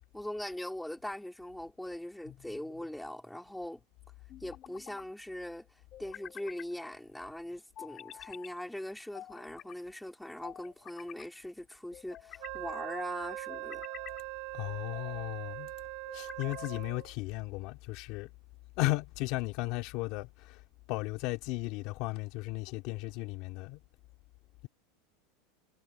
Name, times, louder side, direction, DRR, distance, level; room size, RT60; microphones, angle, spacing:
voice 1, 0.1-3.8 4.4-5.7 6.0-13.8, left 1 dB, ahead, 3.0 m, -41 dB
sound 1, 2.2-2.9 4.3-5.1 5.9-6.7 7.8-8.5 9.1-9.8 10.4-11.3 11.9-12.6 13.3-14.2 14.8-15.3 16.1-16.9, left 11 dB, 25° left, 3.4 m, -49 dB
Wind instrument woodwind instrument, 12.4-17.1, right 30 dB, 45° right, 5.6 m, -41 dB
voice 2, 14.5-15.7 16.1-18.3 18.8-20.6 20.9-23.8, left 19 dB, 45° left, 2.3 m, -35 dB
supercardioid pair, 170°, 0 cm